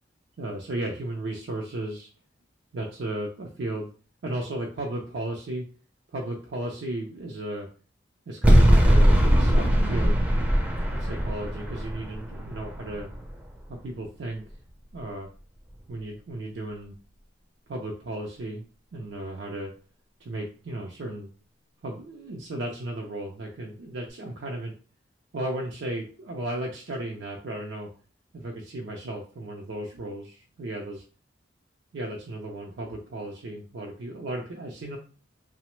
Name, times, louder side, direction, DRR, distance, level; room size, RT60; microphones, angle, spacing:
voice 1, 0.4-2.1 2.7-3.9 4.2-5.6 6.1-7.7 8.3-10.2 10.9-13.1 13.7-14.4 14.9-15.3 15.9-17.0 17.7-18.6 18.9-19.7 20.2-21.3 21.8-24.7 25.3-27.9 28.3-31.0 31.9-35.0, right 1 dB, 85° right, -1 dB, 0.4 m, -35 dB
sound 1, 8.4-13.6, equal, 10° right, 0.4 m, -21 dB
2.8 x 2.0 x 3.0 m, 0.39 s
head